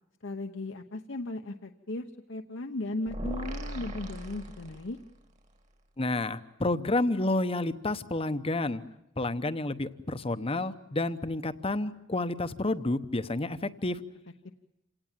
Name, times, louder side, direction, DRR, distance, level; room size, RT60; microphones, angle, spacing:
voice 1, 0.2-5.0, left 2 dB, 65° left, 5 dB, 1.0 m, -36 dB
sound 1, 3.1-5.2, right 1 dB, 35° right, 2.0 m, -38 dB
voice 2, 6.0-8.8 9.2-14.0, left 2 dB, 30° left, 12 dB, 0.9 m, -30 dB
27.5 x 18.0 x 9.1 m, 0.87 s
head